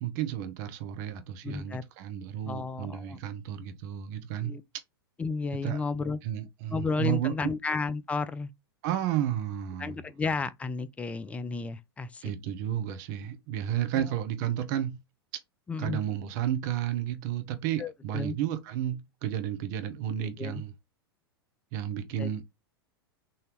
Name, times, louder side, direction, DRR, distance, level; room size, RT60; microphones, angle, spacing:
voice 1, 0.0-4.6 5.6-5.8 6.2-7.5 8.8-10.0 12.2-15.0 15.8-20.7 21.7-22.4, right 11 dB, 45° right, 0.7 m, -32 dB
voice 2, 1.4-1.8 2.5-3.2 4.4-4.6 5.2-6.2 6.7-8.5 9.8-12.3 13.9-14.0 15.7-16.0 17.8-18.4 20.2-20.6 22.2-22.3, left 4 dB, 10° left, 0.3 m, -33 dB
3.8 x 2.7 x 3.4 m
figure-of-eight pair, 95°, 13 cm